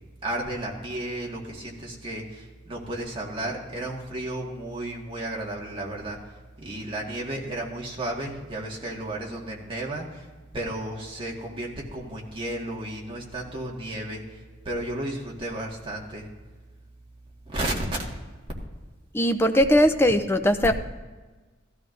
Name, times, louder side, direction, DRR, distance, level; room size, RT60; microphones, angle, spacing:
voice 1, 0.2-6.2 6.6-10.3 10.5-16.3 17.5-18.0 20.6-20.7, right 1 dB, 25° right, -2 dB, 1.8 m, -33 dB
voice 2, 19.1-20.7, equal, 10° left, 7 dB, 0.5 m, -20 dB
16.5 x 13.0 x 2.6 m, 1.3 s
head